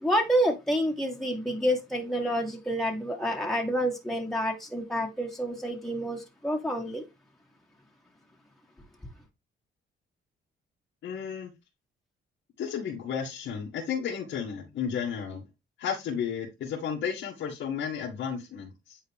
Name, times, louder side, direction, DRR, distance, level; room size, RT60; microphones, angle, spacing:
voice 1, 0.0-7.0, equal, ahead, 1.7 m, -28 dB
voice 2, 11.0-11.5 12.6-15.4 15.8-19.0, left 7 dB, 75° left, 1.8 m, -33 dB
8.9 x 3.9 x 3.6 m
cardioid pair, 90°, 20 cm